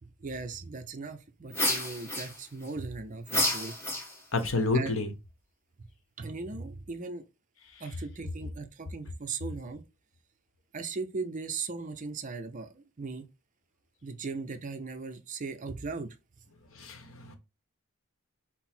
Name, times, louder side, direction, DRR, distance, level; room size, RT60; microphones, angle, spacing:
voice 1, 0.0-3.7 4.7-4.9 6.2-7.2 7.8-9.8 10.7-13.3 14.0-16.2, right 4 dB, 35° right, 0.5 m, -38 dB
sound 1, 1.5-2.7 3.3-4.4, left 1 dB, 10° left, 1.1 m, -30 dB
voice 2, 4.3-5.1 16.8-17.4, left 2 dB, 65° left, 0.8 m, -29 dB
5.8 x 2.0 x 4.3 m
head